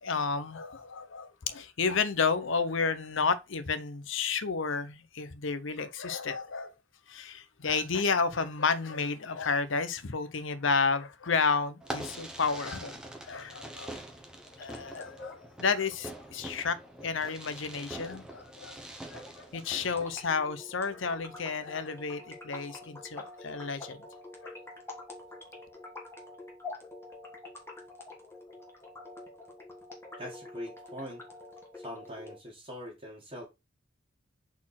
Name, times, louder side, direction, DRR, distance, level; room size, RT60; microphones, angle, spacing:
voice 1, 0.0-6.7 7.1-13.0 13.3-13.9 14.6-16.8 17.0-18.8 19.1-24.0 24.4-24.5, left 5 dB, 65° left, 0.7 m, -31 dB
Fireworks, 11.8-20.2, right 1 dB, 5° right, 0.9 m, -44 dB
sound 1, 14.4-32.4, left 2 dB, 10° left, 1.4 m, -47 dB
voice 2, 30.2-31.2 31.8-33.5, equal, 30° right, 1.6 m, -42 dB
4.3 x 4.2 x 5.7 m
head